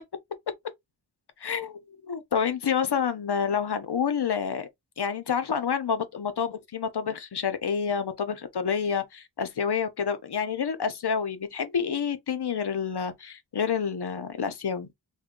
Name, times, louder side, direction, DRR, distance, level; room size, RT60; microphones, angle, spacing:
voice 1, 1.4-4.7 5.0-14.9, left 7 dB, 60° left, 0.7 m, -28 dB
2.6 x 2.2 x 3.6 m
wide cardioid pair, 50°, 45 cm